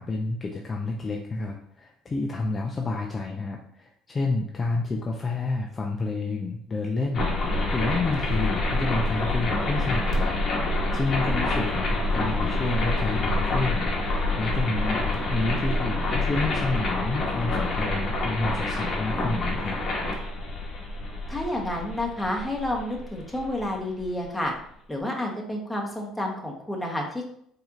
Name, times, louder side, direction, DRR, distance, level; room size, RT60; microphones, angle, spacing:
voice 1, 0.0-10.3 10.9-19.8, left 3 dB, 30° left, 1 dB, 0.4 m, -29 dB
sound 1, 7.1-24.0, left 2 dB, 45° left, 1.0 m, -27 dB
voice 2, 21.3-24.5 24.9-27.3, left 1 dB, 5° left, -1 dB, 1.0 m, -30 dB
4.2 x 2.7 x 2.4 m, 0.67 s
supercardioid pair, 80°, 0 cm